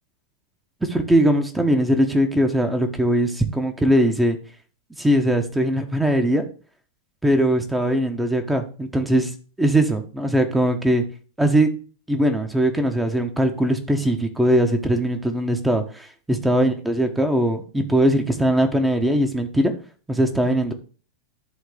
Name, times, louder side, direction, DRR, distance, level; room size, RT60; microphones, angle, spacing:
voice 1, 0.8-4.4 5.0-6.5 7.2-9.3 9.6-11.0 11.4-11.7 12.1-19.7 20.1-20.7, right 1 dB, 5° right, 5 dB, 1.2 m, -20 dB
11.5 x 3.9 x 5.2 m, 0.38 s
figure-of-eight pair, 90°, 0 cm